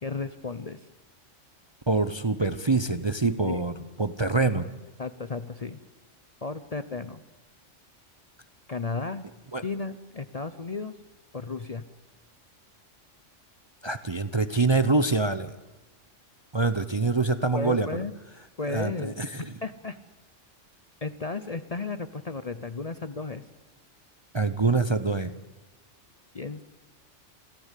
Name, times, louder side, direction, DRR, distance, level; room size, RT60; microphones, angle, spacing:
voice 1, 0.0-0.8 3.5-3.6 5.0-5.8 6.4-7.2 8.7-9.3 9.6-10.9 11.3-11.8 17.5-18.1 18.6-19.1 19.6-20.0 21.0-23.4 26.3-26.6, left 4 dB, 35° left, 12 dB, 0.7 m, -34 dB
voice 2, 1.9-3.7 4.0-4.6 9.5-9.6 13.8-15.5 16.5-17.9 18.7-19.5 24.3-25.3, right 3 dB, 25° right, 12 dB, 0.7 m, -25 dB
27.0 x 14.5 x 8.3 m, 1.1 s
omnidirectional pair, 1.3 m